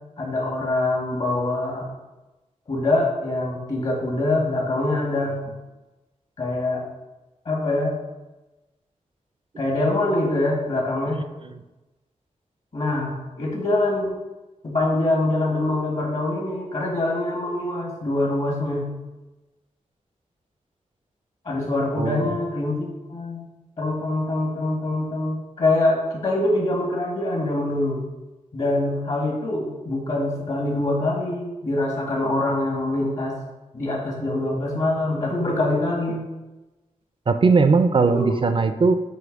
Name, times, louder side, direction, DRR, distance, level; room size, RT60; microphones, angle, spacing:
voice 1, 0.2-1.9 2.7-5.4 6.4-6.8 7.4-7.9 9.6-11.2 12.7-14.1 14.6-18.9 21.4-23.4 23.8-28.0 28.5-33.4 33.7-36.2 38.1-38.2, left 2 dB, 55° left, -2 dB, 1.6 m, -24 dB
voice 2, 37.3-39.0, right 4 dB, 40° right, 9 dB, 0.4 m, -18 dB
7.8 x 3.0 x 5.1 m, 1.1 s
wide cardioid pair, 100°, 13 cm